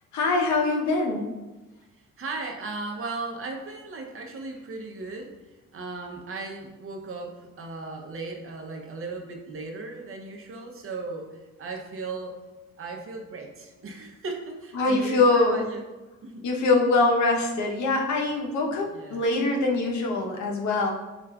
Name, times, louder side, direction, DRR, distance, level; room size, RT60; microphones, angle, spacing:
voice 1, 0.1-1.3 14.7-15.6 16.4-20.9, left 3 dB, 70° left, 1 dB, 0.8 m, -23 dB
voice 2, 2.2-5.3 5.7-12.4 12.8-15.8 16.2-16.5 18.9-19.3, right 3 dB, 45° right, 2 dB, 0.7 m, -36 dB
6.8 x 2.4 x 2.3 m, 1.1 s
cardioid pair, 90°, 30 cm